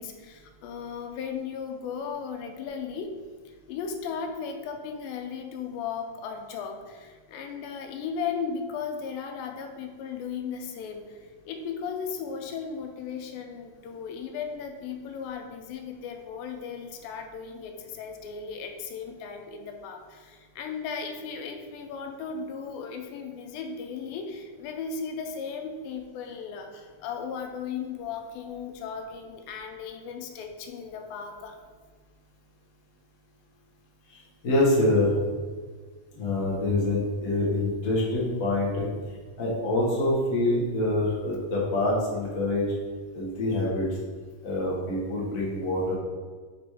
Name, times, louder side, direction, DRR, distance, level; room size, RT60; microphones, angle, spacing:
voice 1, 0.0-3.2 3.5-31.6, left 6 dB, 90° left, 4 dB, 2.4 m, -36 dB
voice 2, 34.1-35.1 36.1-38.8 39.4-42.7 43.1-44.0 44.4-45.9, left 1 dB, 55° left, -5 dB, 0.9 m, -26 dB
5.2 x 4.1 x 4.8 m, 1.5 s
omnidirectional pair, 4.0 m